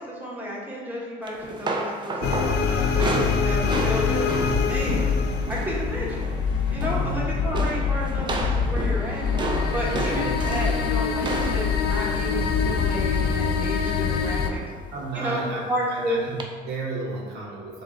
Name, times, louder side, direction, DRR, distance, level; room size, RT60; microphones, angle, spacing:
voice 1, 0.0-2.2 2.6-5.1 5.5-6.3 6.7-9.2 9.7-14.6 15.1-15.4 15.7-16.2, equal, 10° right, -5 dB, 1.0 m, -32 dB
sound 1, 1.3-5.8 6.1-6.4 6.7-7.2 7.5-13.6 14.4-14.8 15.1-15.3 16.4-16.5, right 3 dB, 25° right, 0.5 m, -32 dB
sound 2, 2.2-14.5, left 6 dB, 70° left, 0.4 m, -24 dB
voice 2, 6.8-7.2 9.8-10.2 14.9-17.8, right 3 dB, 85° right, -3 dB, 0.9 m, -33 dB
5.0 x 2.4 x 3.6 m, 1.5 s
cardioid pair, 110°, 17 cm